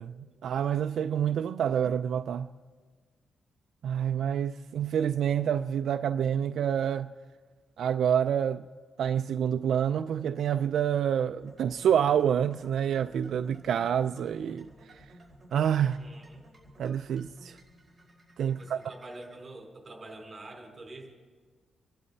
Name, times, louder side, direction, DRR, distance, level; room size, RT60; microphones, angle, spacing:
voice 1, 0.0-2.5 3.8-7.1 7.8-8.7 9.0-15.1 15.5-16.0 16.8-17.6 18.4-18.8, right 9 dB, 65° right, 0.4 m, -28 dB
sound 1, 11.4-19.3, right 1 dB, ahead, 4.7 m, -55 dB
voice 2, 15.8-16.4 18.5-21.1, right 2 dB, 25° right, 4.6 m, -46 dB
29.5 x 11.5 x 4.1 m
wide cardioid pair, 150°, 0 cm